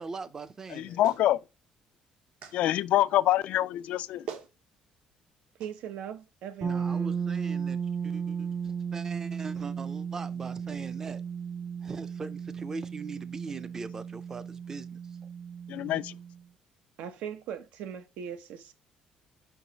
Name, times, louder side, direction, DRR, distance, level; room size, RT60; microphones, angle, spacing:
voice 1, 0.0-1.0 6.6-11.2 11.8-15.0, right 4 dB, 25° right, 0.5 m, -41 dB
voice 2, 0.7-1.4 2.5-4.2 15.7-16.1, left 13 dB, 70° left, 0.3 m, -26 dB
Clapping, 1.0-1.3 2.4-2.6 3.8-3.9 4.3-4.5 5.6-5.7, right 7 dB, 65° right, 1.1 m, -40 dB
voice 3, 5.6-7.2 17.0-18.7, right 8 dB, 85° right, 0.8 m, -40 dB
sound 1, 6.6-16.4, right 7 dB, 45° right, 1.6 m, -35 dB
5.4 x 4.7 x 3.9 m
cardioid pair, 150°, 2 cm